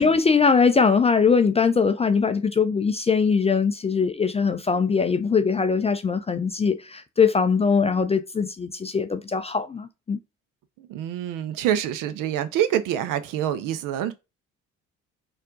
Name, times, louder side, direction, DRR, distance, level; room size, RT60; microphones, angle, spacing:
voice 1, 0.0-10.2, left 5 dB, 20° left, 0.4 m, -21 dB
voice 2, 10.9-14.1, right 10 dB, 60° right, 0.7 m, -26 dB
4.3 x 2.5 x 3.7 m
hypercardioid pair, 45°, 36 cm